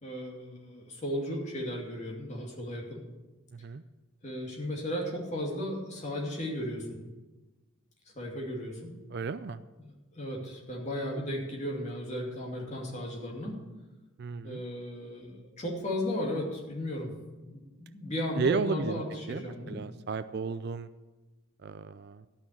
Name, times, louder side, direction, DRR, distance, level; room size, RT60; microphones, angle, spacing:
voice 1, 0.0-3.0 4.2-7.0 8.1-8.9 9.8-13.6 14.4-17.1 17.4-19.8, left 1 dB, 30° left, -1 dB, 2.5 m, -35 dB
voice 2, 3.5-3.8 9.1-9.6 14.2-14.6 18.4-20.9 21.6-22.3, right 4 dB, 50° right, 13 dB, 0.4 m, -33 dB
12.5 x 5.9 x 8.6 m, 1.1 s
head